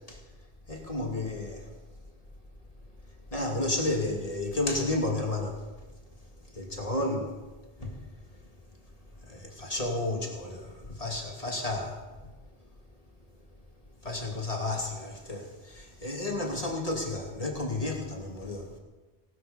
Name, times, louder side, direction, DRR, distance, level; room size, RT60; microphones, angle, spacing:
voice 1, 0.7-1.7 3.3-5.6 6.5-7.3 7.8-8.0 9.2-12.0 14.0-18.8, left 2 dB, 35° left, 0 dB, 2.8 m, -32 dB
19.0 x 12.5 x 5.4 m, 1.2 s
omnidirectional pair, 1.0 m